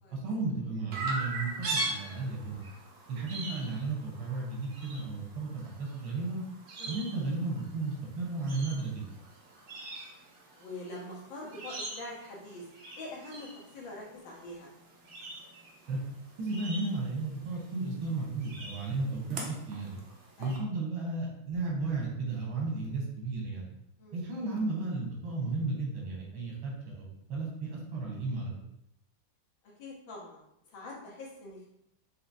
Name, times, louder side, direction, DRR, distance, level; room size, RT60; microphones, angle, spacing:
voice 1, 0.1-2.6 3.1-6.4 6.9-9.1 15.9-16.0 16.4-20.0 20.4-23.7 24.1-28.5, right 3 dB, 90° right, -2 dB, 1.9 m, -34 dB
Chirp tweet, 0.9-20.6, right 2 dB, 70° right, 0.6 m, -42 dB
voice 2, 10.6-12.7 13.0-13.5 13.7-14.7 20.4-20.5 24.0-24.2 29.8-30.4 30.7-31.7, left 2 dB, 70° left, -4 dB, 1.8 m, -44 dB
5.0 x 2.8 x 2.7 m, 0.79 s
omnidirectional pair, 2.2 m